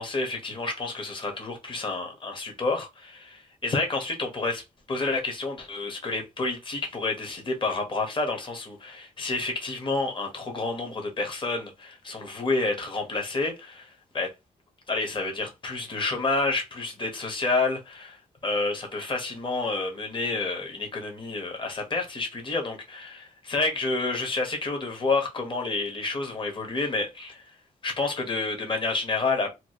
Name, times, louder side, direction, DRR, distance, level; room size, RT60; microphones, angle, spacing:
voice 1, 0.0-4.6 4.9-14.3 14.9-27.4 27.8-29.5, left 3 dB, 35° left, 1.1 m, -29 dB
3.0 x 2.3 x 2.8 m
wide cardioid pair, 120°, 15 cm